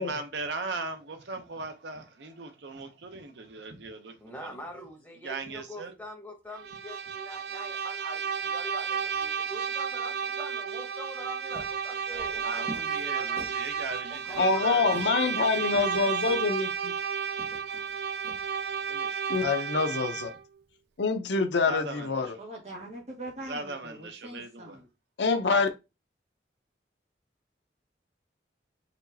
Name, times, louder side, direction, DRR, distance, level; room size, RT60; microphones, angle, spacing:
voice 1, 0.0-4.5 5.2-5.9 12.1-16.1 16.6-16.7 18.9-19.2 21.7-22.3 23.4-24.8, right 3 dB, 85° right, 0.7 m, -39 dB
voice 2, 4.2-13.5 14.1-14.8, equal, 10° left, 1.1 m, -44 dB
Bowed string instrument, 6.5-20.4, right 6 dB, 60° right, 0.3 m, -32 dB
sound 1, 11.5-19.0, equal, 15° right, 1.3 m, -48 dB
voice 3, 14.4-16.9 19.3-20.3 21.0-22.4 25.2-25.7, left 4 dB, 85° left, 0.6 m, -26 dB
voice 4, 22.4-24.9, right 1 dB, 40° right, 1.5 m, -42 dB
4.3 x 3.0 x 2.7 m
head